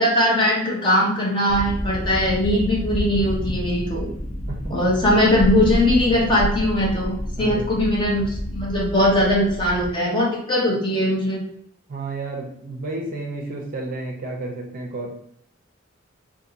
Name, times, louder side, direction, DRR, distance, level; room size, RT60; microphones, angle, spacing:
voice 1, 0.0-4.1 4.7-11.4, left 1 dB, 20° left, -4 dB, 0.9 m, -20 dB
sound 1, 1.5-9.9, equal, 80° left, 0.9 m, -29 dB
voice 2, 7.4-7.7 11.9-15.1, right 2 dB, 40° right, 1 dB, 0.5 m, -31 dB
2.7 x 2.6 x 3.8 m, 0.69 s
head